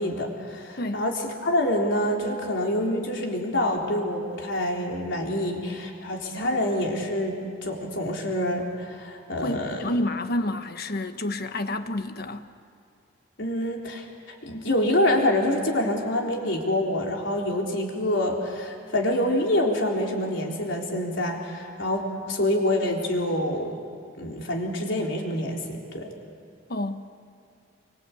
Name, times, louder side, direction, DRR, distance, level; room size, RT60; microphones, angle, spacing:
voice 1, 0.0-10.0 13.4-22.0 22.3-23.8 24.2-26.1, left 1 dB, 80° left, 4.0 m, -26 dB
voice 2, 9.4-12.5 26.7-27.1, left 1 dB, 55° left, 1.3 m, -29 dB
27.5 x 24.5 x 8.5 m
head